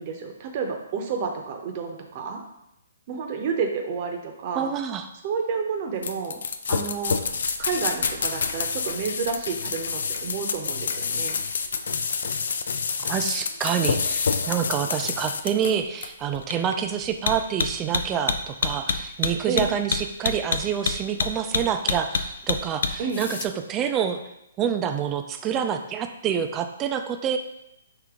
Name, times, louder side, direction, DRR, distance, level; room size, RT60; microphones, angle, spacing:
voice 1, 0.0-2.4 3.1-4.7 5.2-6.4 6.7-7.2 7.6-11.4 19.5-19.7 23.0-23.2, right 5 dB, 40° right, 4 dB, 0.7 m, -30 dB
voice 2, 4.5-5.1 13.0-24.2 24.6-27.4, right 8 dB, 20° right, 7 dB, 0.3 m, -27 dB
sound 1, 6.0-23.5, left 5 dB, 65° left, 0.4 m, -27 dB
5.0 x 2.8 x 3.6 m, 0.84 s
hypercardioid pair, 140°, 0 cm